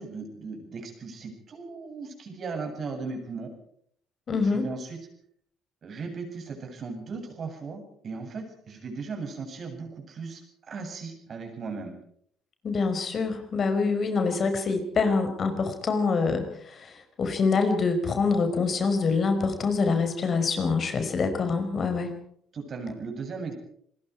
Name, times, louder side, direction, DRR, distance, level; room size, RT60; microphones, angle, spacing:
voice 1, 0.0-3.5 4.5-5.0 5.8-10.4 10.7-11.9 22.5-23.5, right 4 dB, 45° right, 4 dB, 7.9 m, -37 dB
voice 2, 4.3-4.7 12.6-22.1, left 4 dB, 45° left, 6 dB, 5.2 m, -25 dB
27.5 x 21.0 x 4.9 m, 0.65 s
hypercardioid pair, 55°, 0 cm